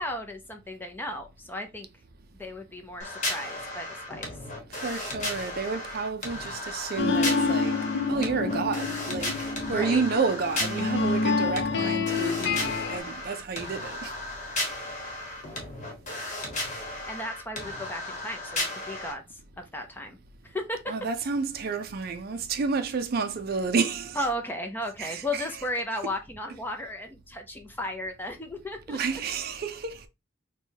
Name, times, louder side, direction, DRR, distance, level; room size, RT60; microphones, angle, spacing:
voice 1, 0.0-1.9 2.4-4.4 9.7-10.0 17.1-20.2 20.4-20.9 24.1-29.2, left 1 dB, 10° left, 0.5 m, -35 dB
sound 1, 3.0-19.1, left 2 dB, 40° left, 1.1 m, -35 dB
voice 2, 4.7-7.8 8.1-9.3 9.7-14.1 20.9-24.2 25.0-25.5 28.9-30.0, right 4 dB, 50° right, 0.4 m, -30 dB
sound 2, 7.0-13.0, left 4 dB, 60° left, 0.4 m, -28 dB
4.6 x 2.3 x 2.7 m
head